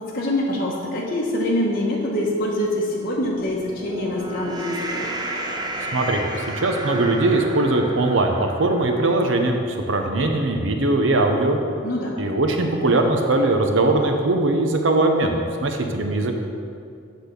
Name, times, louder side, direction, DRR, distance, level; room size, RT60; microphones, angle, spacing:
voice 1, 0.0-5.1 11.8-12.2, left 1 dB, 50° left, -4 dB, 1.0 m, -25 dB
sound 1, 3.3-9.8, right 1 dB, 20° right, 0.6 m, -32 dB
voice 2, 5.9-6.2 6.5-9.6 9.9-11.6 12.2-16.3, right 2 dB, 75° right, 4 dB, 0.8 m, -20 dB
8.1 x 4.1 x 6.8 m, 2.4 s
head